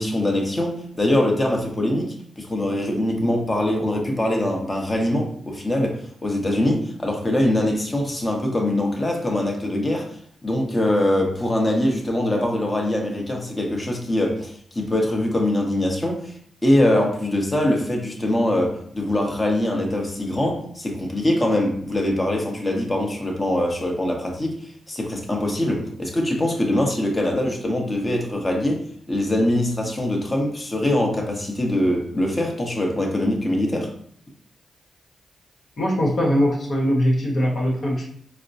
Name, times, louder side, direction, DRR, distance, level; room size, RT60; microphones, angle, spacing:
voice 1, 0.0-10.1 10.4-16.3 16.6-33.9, left 1 dB, 30° left, 1 dB, 1.0 m, -23 dB
voice 2, 35.8-38.1, equal, 60° left, -2 dB, 1.2 m, -21 dB
4.2 x 2.1 x 2.6 m, 0.63 s
supercardioid pair, 45°, 0 cm